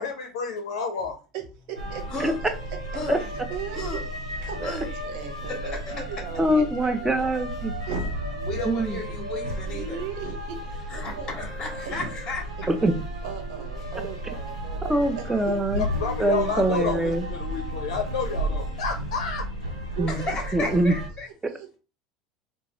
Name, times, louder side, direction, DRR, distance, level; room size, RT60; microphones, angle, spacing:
voice 1, 0.0-1.2 15.8-19.5, left 5 dB, 65° left, 4 dB, 0.4 m, -30 dB
voice 2, 1.7-2.5 3.2-3.8 4.4-4.7 5.0-7.3 7.9-8.1 9.7-11.3 11.9-12.1 13.2-15.6 16.5-17.0 20.0-20.8 21.5-21.7, right 7 dB, 60° right, 4 dB, 0.7 m, -38 dB
sound 1, 1.7-21.1, right 1 dB, 85° right, 1.1 m, -33 dB
voice 3, 6.4-7.7 8.7-9.0 12.7-12.9 14.9-15.9 16.2-17.2 20.0-20.2 20.5-20.9, right 1 dB, 10° right, 7 dB, 0.5 m, -23 dB
voice 4, 8.5-10.0 10.9-12.4 20.1-21.3, left 2 dB, 20° left, 0 dB, 0.9 m, -33 dB
2.7 x 2.3 x 2.9 m, 0.34 s
figure-of-eight pair, 75°, 3 cm